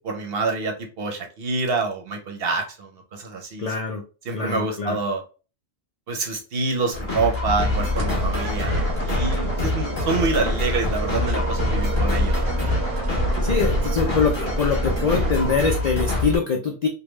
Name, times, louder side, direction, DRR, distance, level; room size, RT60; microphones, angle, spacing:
voice 1, 0.0-3.7 4.3-5.2 6.1-8.7 9.0-12.4, right 3 dB, 55° right, 3 dB, 0.8 m, -27 dB
voice 2, 3.6-4.0 4.3-5.0 13.4-16.9, left 5 dB, 70° left, 2 dB, 0.4 m, -23 dB
sound 1, 6.9-16.4, left 1 dB, 25° left, 1.2 m, -24 dB
sound 2, 7.7-15.6, right 4 dB, 90° right, 1.1 m, -31 dB
3.4 x 2.2 x 3.1 m, 0.35 s
omnidirectional pair, 1.3 m